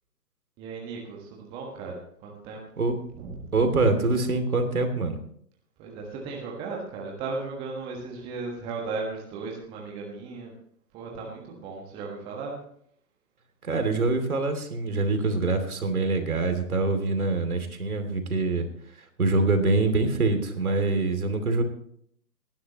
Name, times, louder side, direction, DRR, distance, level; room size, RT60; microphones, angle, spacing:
voice 1, 0.6-2.6 3.2-3.5 5.8-10.5 10.9-12.5, right 4 dB, 10° right, -1 dB, 1.4 m, -36 dB
voice 2, 3.5-5.2 13.6-18.7 19.2-21.6, right 3 dB, 60° right, 7 dB, 2.8 m, -24 dB
19.0 x 11.5 x 3.0 m, 0.65 s
figure-of-eight pair, 140°, 49 cm